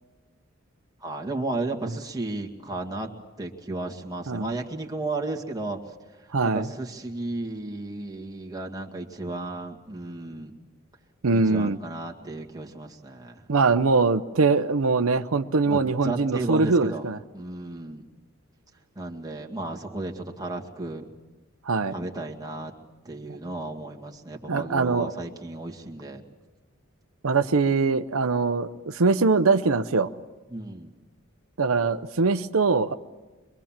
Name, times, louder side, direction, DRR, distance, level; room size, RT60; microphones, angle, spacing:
voice 1, 1.0-3.1 3.4-5.8 6.4-10.5 11.3-13.4 15.6-17.1 17.3-18.1 19.0-21.0 21.9-22.7 23.1-26.2 30.5-30.9, right 2 dB, 20° right, 0 dB, 2.0 m, -34 dB
voice 2, 6.3-6.7 11.2-11.8 13.5-17.2 21.7-21.9 24.5-25.1 27.2-30.1 31.6-32.9, right 4 dB, 85° right, 10 dB, 0.7 m, -22 dB
25.0 x 22.5 x 7.4 m, 1.2 s
head